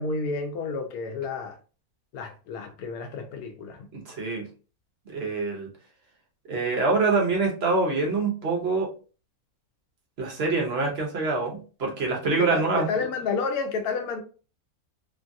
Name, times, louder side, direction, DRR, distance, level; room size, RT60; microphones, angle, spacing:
voice 1, 0.0-1.6 2.1-3.9 12.2-14.2, left 4 dB, 90° left, 1.1 m, -30 dB
voice 2, 3.9-4.4 5.1-5.7 6.5-8.9 10.2-12.9, right 3 dB, 50° right, 0.9 m, -25 dB
3.0 x 2.3 x 2.5 m
omnidirectional pair, 1.5 m